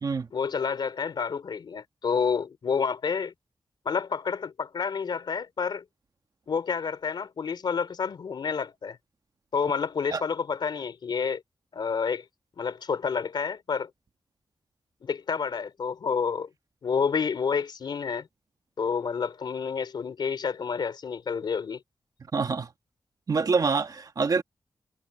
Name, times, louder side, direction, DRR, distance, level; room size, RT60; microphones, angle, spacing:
voice 1, 0.3-3.3 3.8-5.8 6.5-9.0 9.5-11.4 11.7-12.2 12.6-13.9 15.0-16.5 16.8-18.3 18.8-21.8, left 6 dB, 80° left, 3.1 m, -29 dB
voice 2, 22.3-22.7 23.3-24.4, right 4 dB, 55° right, 1.6 m, -26 dB
wide cardioid pair, 110°, 8 cm